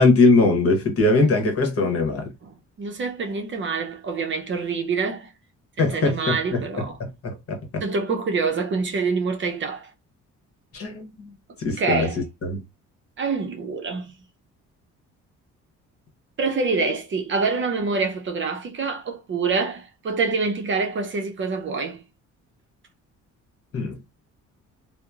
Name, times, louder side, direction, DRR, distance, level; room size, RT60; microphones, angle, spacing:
voice 1, 0.0-2.3 5.8-6.6 7.0-7.8 10.7-11.3 11.6-12.1 12.4-12.6 23.7-23.9, left 3 dB, 50° left, 1.0 m, -21 dB
voice 2, 2.8-5.3 5.8-7.0 7.8-9.9 11.8-12.2 13.2-14.1 16.4-22.0, right 4 dB, 40° right, 0.6 m, -26 dB
2.8 x 2.0 x 2.3 m
cardioid pair, 90°, 30 cm